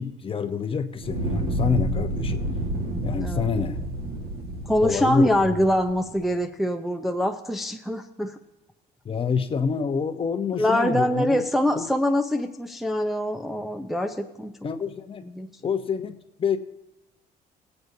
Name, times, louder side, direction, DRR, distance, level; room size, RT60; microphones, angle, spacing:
voice 1, 0.0-2.4 3.0-3.8 4.8-5.5 9.0-11.4 11.8-11.9 14.6-15.2 15.6-16.6, left 6 dB, 35° left, 8 dB, 0.8 m, -27 dB
Fire, 1.0-6.1, right 1 dB, 65° right, 1.7 m, -29 dB
voice 2, 4.7-8.4 10.6-14.5 15.2-15.5, equal, ahead, 3 dB, 0.6 m, -24 dB
20.0 x 8.0 x 2.7 m, 1.0 s
cardioid pair, 110°, 17 cm